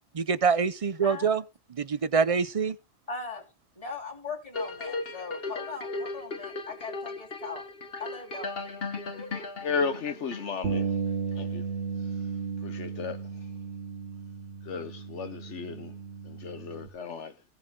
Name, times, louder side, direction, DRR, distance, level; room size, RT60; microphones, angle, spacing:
voice 1, 0.1-1.4 1.8-2.8, right 5 dB, 40° right, 0.5 m, -25 dB
voice 2, 1.0-1.4 3.1-3.4 3.7-7.6 8.0-8.5 9.1-9.5, left 4 dB, 30° left, 3.5 m, -39 dB
sound 1, 4.5-10.8 11.3-11.4, left 3 dB, 50° left, 1.6 m, -37 dB
voice 3, 9.6-11.0 11.4-11.6 12.6-13.3 14.6-15.9 16.2-17.3, left 5 dB, 70° left, 1.2 m, -34 dB
Bass guitar, 10.6-16.9, right 5 dB, 75° right, 1.7 m, -34 dB
16.5 x 7.1 x 3.8 m
omnidirectional pair, 1.3 m